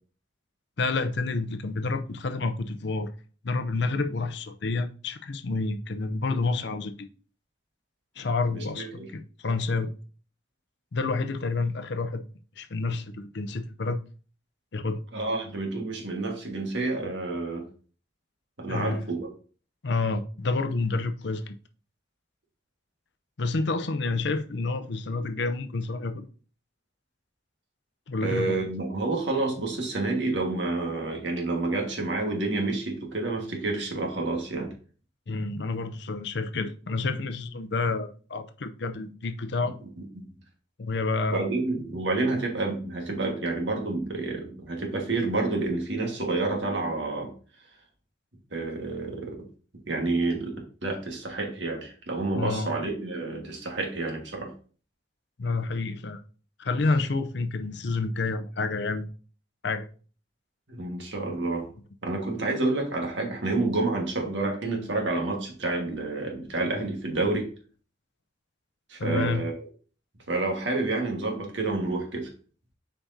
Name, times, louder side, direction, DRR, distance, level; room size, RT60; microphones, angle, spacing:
voice 1, 0.8-3.1 3.4-7.1 8.2-9.9 10.9-12.3 12.6-14.0 14.7-15.0 18.7-19.1 19.8-21.6 23.4-26.3 28.1-28.6 35.3-39.7 40.8-41.5 52.3-52.7 55.4-56.2 56.6-59.1 59.6-59.9 69.0-69.4, left 3 dB, 60° left, 0.6 m, -29 dB
voice 2, 8.5-9.1 15.1-17.7 18.6-19.3 28.2-34.7 40.2-40.3 41.3-47.3 48.5-49.5 49.9-54.5 60.7-61.7 62.0-67.5 68.9-69.6 70.3-72.3, right 2 dB, 70° right, 1.7 m, -29 dB
7.4 x 4.7 x 2.7 m
head